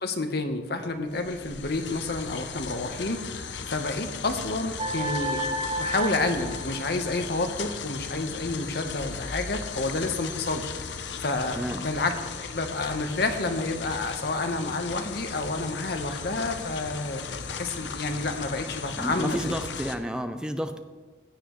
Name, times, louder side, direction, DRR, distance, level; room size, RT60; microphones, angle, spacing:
voice 1, 0.0-5.4 5.8-10.7 11.2-19.5, left 2 dB, 60° left, 6 dB, 1.1 m, -29 dB
sound 1, 0.8-20.0, left 5 dB, 80° left, 0.7 m, -37 dB
sound 2, 4.8-7.4, right 1 dB, 30° right, 1.0 m, -32 dB
voice 2, 19.0-20.8, equal, 5° right, 8 dB, 0.6 m, -31 dB
16.0 x 9.2 x 3.1 m, 1.3 s
head